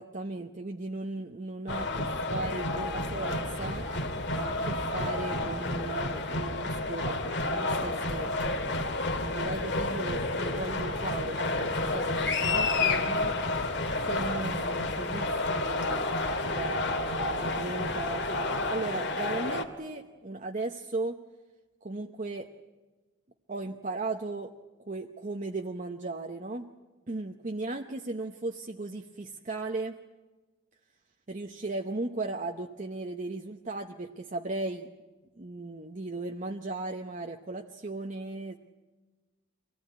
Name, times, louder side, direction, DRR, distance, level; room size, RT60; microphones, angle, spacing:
voice 1, 0.0-3.9 4.4-8.6 9.2-13.4 14.0-16.2 16.5-21.2 21.8-22.5 23.5-24.5 24.9-26.7 27.1-30.0 31.3-34.9 35.4-38.6, right 2 dB, 40° right, 4 dB, 0.8 m, -37 dB
sound 1, 1.7-19.6, left 2 dB, 60° left, 2.0 m, -30 dB
24.5 x 18.0 x 9.5 m, 1.3 s
head